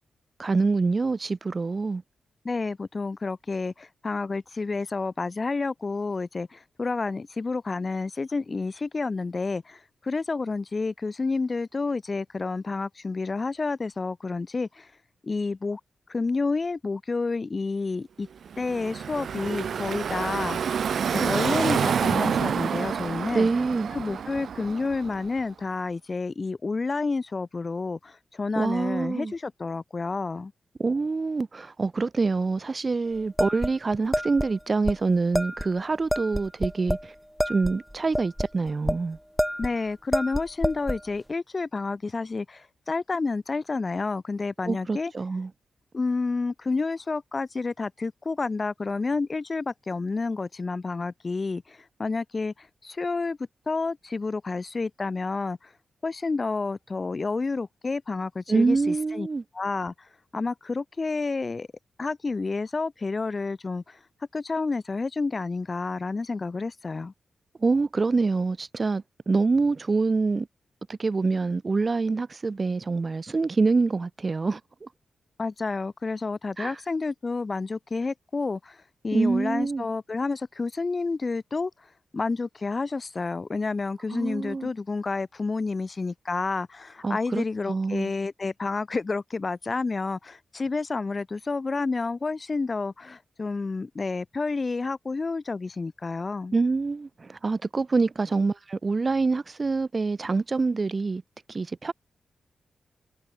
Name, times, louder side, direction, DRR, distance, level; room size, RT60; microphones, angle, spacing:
voice 1, 0.4-2.0 23.3-23.9 28.6-29.3 30.8-37.1 37.5-39.2 44.7-45.5 58.5-59.4 67.6-70.5 70.9-74.9 76.6-76.8 79.1-79.8 84.1-84.7 87.0-88.1 96.5-101.2 101.5-101.9, right 4 dB, 40° right, 2.9 m, -26 dB
voice 2, 2.4-14.9 15.2-15.8 16.1-18.3 18.6-20.8 21.1-23.5 23.9-30.5 39.6-45.1 45.9-53.4 53.7-55.7 56.0-59.3 59.5-61.7 62.0-64.0 64.3-67.1 75.4-81.7 82.1-96.5, left 3 dB, 40° left, 1.4 m, -30 dB
Car passing by / Traffic noise roadway noise, 18.5-25.4, right 7 dB, 75° right, 2.9 m, -28 dB
sound 1, 33.4-34.5 34.9-35.0 35.3-35.7 36.1-37.1 37.4-39.0 39.4-39.8 40.1-41.0, equal, ahead, 1.0 m, -27 dB
cardioid pair, 70°, 0 cm